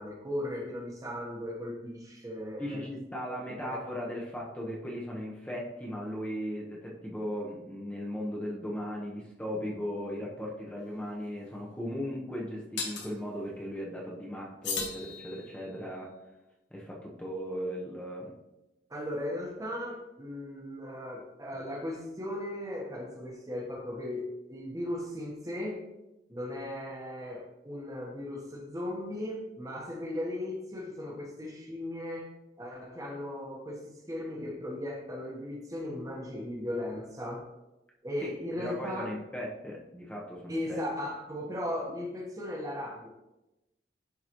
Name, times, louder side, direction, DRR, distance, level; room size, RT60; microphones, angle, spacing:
voice 1, 0.0-2.8 3.3-3.8 18.9-25.8 26.3-37.5 38.0-39.1 40.5-43.1, left 1 dB, 20° right, 0 dB, 1.1 m, -37 dB
voice 2, 2.6-16.1 16.7-18.4 38.2-40.8, equal, 10° left, -4 dB, 0.9 m, -37 dB
sound 1, 10.8-10.9 12.8-13.1 14.6-15.7, left 5 dB, 80° left, 1.3 m, -36 dB
10.5 x 3.9 x 3.0 m, 0.98 s
head